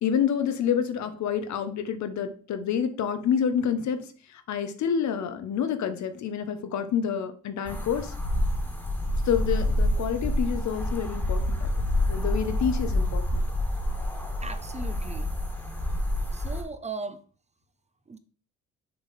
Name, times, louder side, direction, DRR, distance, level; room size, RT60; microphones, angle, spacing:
voice 1, 0.0-8.1 9.3-13.4, left 8 dB, 65° left, 0.9 m, -28 dB
sound 1, 7.7-16.6, left 1 dB, 5° left, 1.6 m, -28 dB
voice 2, 14.4-15.3 16.3-17.2 18.1-18.2, right 4 dB, 20° right, 0.6 m, -37 dB
6.6 x 4.0 x 4.1 m
cardioid pair, 90°, 30 cm